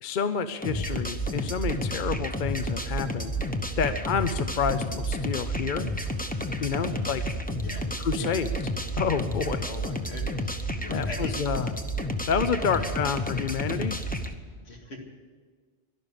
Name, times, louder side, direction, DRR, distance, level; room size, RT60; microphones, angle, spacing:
voice 1, 0.0-3.4 3.8-5.9 6.6-7.2 8.0-8.5 9.0-9.7 10.9-11.7 12.3-14.0, left 6 dB, 55° left, 11 dB, 0.8 m, -29 dB
sound 1, 0.6-14.3, equal, 10° left, 0.9 m, -31 dB
voice 2, 3.9-4.2 6.8-7.1 7.6-7.8 8.1-8.4 9.6-11.4 12.5-12.9 14.5-15.0, left 2 dB, 75° left, 1 dB, 2.5 m, -42 dB
12.0 x 12.0 x 9.9 m, 1.5 s
omnidirectional pair, 1.1 m